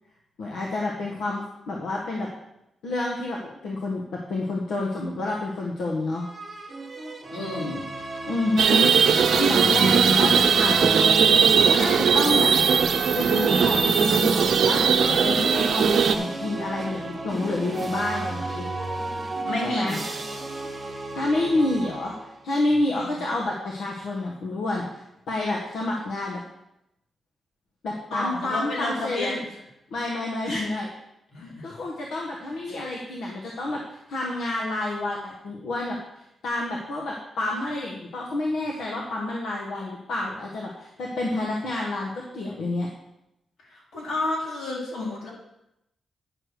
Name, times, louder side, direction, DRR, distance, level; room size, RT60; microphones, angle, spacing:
voice 1, 0.4-2.3 2.8-6.3 8.3-11.0 11.6-12.5 13.1-18.7 19.6-20.0 21.1-26.4 27.8-29.4 29.9-30.9 31.4-42.9, left 2 dB, 85° left, -2 dB, 1.3 m, -29 dB
sound 1, 6.1-14.0 14.6-22.5, right 2 dB, 20° right, 1.6 m, -35 dB
voice 2, 7.3-7.8 19.4-20.0 22.9-23.2 28.1-29.4 30.4-30.7 31.3-31.7 32.7-32.8 43.6-45.3, left 2 dB, 70° left, -4 dB, 3.7 m, -31 dB
sound 2, 8.6-16.1, right 6 dB, 75° right, 0.7 m, -19 dB
9.8 x 6.7 x 4.6 m, 0.85 s
cardioid pair, 105°, 0 cm